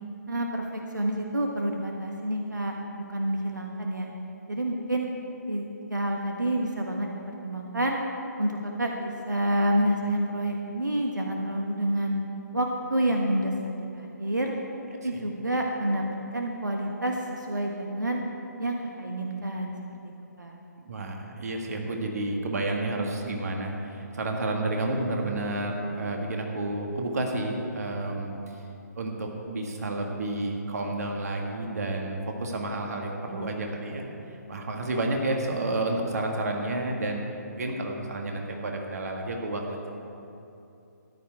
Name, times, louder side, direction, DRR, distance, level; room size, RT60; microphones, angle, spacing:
voice 1, 0.3-2.7 3.1-4.1 4.5-5.1 5.5-5.6 5.9-7.1 7.4-8.0 8.4-12.2 12.5-13.5 13.9-14.5 15.0-16.0 16.3-18.2 18.6-19.7 20.4-20.6, right 1 dB, 90° right, 1 dB, 1.3 m, -28 dB
voice 2, 20.8-28.4 29.0-37.2 37.5-39.8, right 2 dB, 60° right, 1 dB, 1.9 m, -30 dB
14.0 x 11.0 x 4.7 m, 2.8 s
figure-of-eight pair, 145°, 10 cm